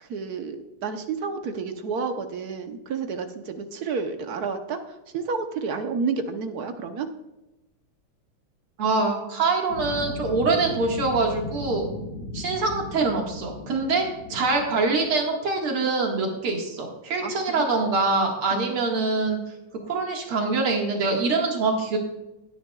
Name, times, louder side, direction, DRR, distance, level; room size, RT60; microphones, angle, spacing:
voice 1, 0.0-4.8 5.1-7.1 17.2-17.6 18.5-18.6, right 5 dB, 60° right, 7 dB, 1.1 m, -30 dB
voice 2, 8.8-11.8 12.3-19.4 19.8-22.0, right 3 dB, 80° right, 1 dB, 2.7 m, -24 dB
sound 1, 9.7-15.3, left 2 dB, 85° left, 2.5 m, -36 dB
16.5 x 9.8 x 2.3 m, 0.99 s
omnidirectional pair, 2.4 m